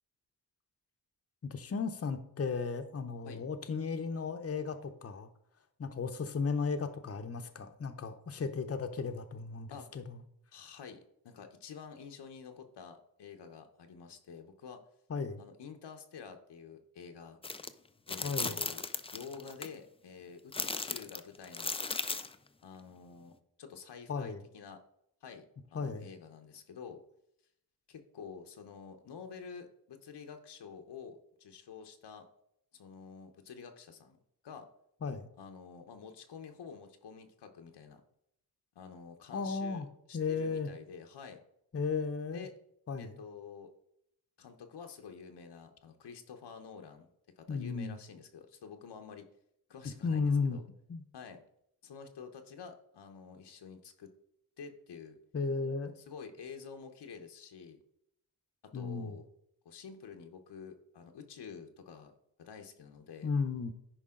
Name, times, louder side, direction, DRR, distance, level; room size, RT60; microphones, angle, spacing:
voice 1, 1.5-5.3 5.8-10.2 15.1-15.4 18.2-18.6 24.1-24.4 25.7-26.1 35.0-35.3 39.3-39.9 40.1-40.7 41.7-42.5 42.9-43.2 47.5-48.0 50.0-50.6 50.9-51.0 55.3-55.9 58.7-59.2 63.2-63.7, left 5 dB, 35° left, 7 dB, 0.8 m, -35 dB
voice 2, 10.5-14.8 15.4-17.4 18.1-18.8 19.1-20.5 20.8-21.8 22.6-24.8 25.2-25.5 25.7-27.0 27.9-32.3 32.7-34.2 34.4-34.7 35.4-38.0 38.7-41.4 42.3-42.5 43.0-43.7 44.4-47.1 47.4-49.3 49.7-50.6 51.1-51.4 51.8-54.1 54.6-55.2 56.0-57.8 58.7-59.3 59.6-62.1 62.4-63.3, left 6 dB, 90° left, 5 dB, 1.1 m, -49 dB
sound 1, 17.4-17.7 18.1-19.7 20.5-22.3, left 3 dB, 15° left, 0.4 m, -36 dB
10.0 x 5.0 x 3.8 m, 0.74 s
wide cardioid pair, 95°, 40 cm